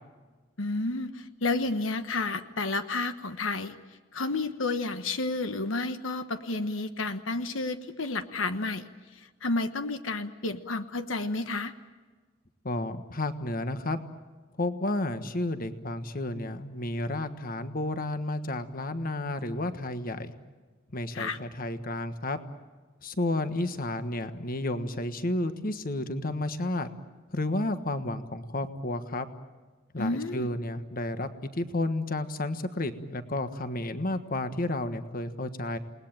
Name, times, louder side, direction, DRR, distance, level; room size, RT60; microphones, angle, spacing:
voice 1, 0.6-3.7 4.1-11.7 21.1-21.4 30.0-30.5, left 3 dB, 85° left, 10 dB, 1.2 m, -31 dB
voice 2, 12.6-14.0 14.6-20.3 20.9-22.4 23.0-26.9 27.3-29.3 29.9-35.8, left 2 dB, 45° left, 10 dB, 1.4 m, -31 dB
29.0 x 20.0 x 8.9 m, 1.4 s
head